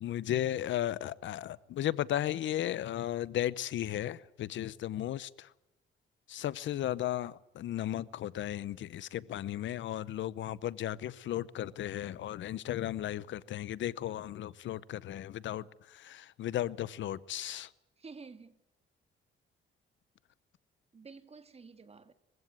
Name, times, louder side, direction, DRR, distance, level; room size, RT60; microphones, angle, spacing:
voice 1, 0.0-5.5 6.3-17.7, left 12 dB, 70° left, 0.8 m, -35 dB
voice 2, 18.0-18.6 20.9-22.1, right 4 dB, 30° right, 2.1 m, -51 dB
22.0 x 16.0 x 9.3 m
cardioid pair, 90°, 20 cm